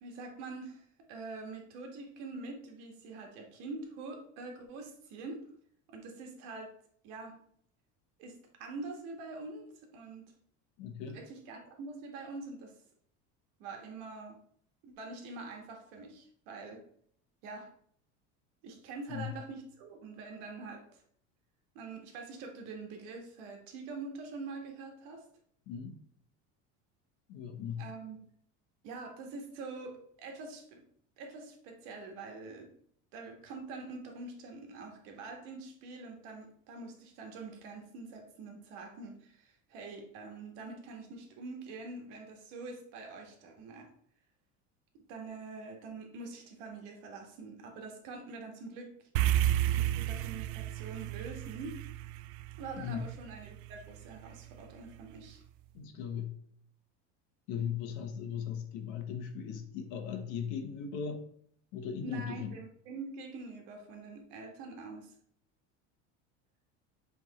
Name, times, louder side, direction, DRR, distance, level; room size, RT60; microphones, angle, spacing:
voice 1, 0.0-5.4 5.9-6.7 7.0-7.4 8.2-9.6 9.9-10.3 11.1-12.7 13.6-14.4 14.8-16.8 17.4-17.7 18.6-21.0 21.8-25.2 27.8-28.2 28.8-30.8 31.2-32.7 33.1-43.9 45.1-48.9 49.7-51.8 52.6-55.4 62.0-65.2, right 3 dB, 65° right, 1.7 m, -45 dB
voice 2, 10.8-11.2 19.1-19.3 25.7-26.0 27.3-27.9 52.8-53.0 55.7-56.4 57.5-61.3 61.7-62.5, left 7 dB, 60° left, 1.1 m, -38 dB
sound 1, 49.2-53.7, right 13 dB, 80° right, 0.5 m, -31 dB
7.7 x 3.6 x 4.2 m
cardioid pair, 180°, 34 cm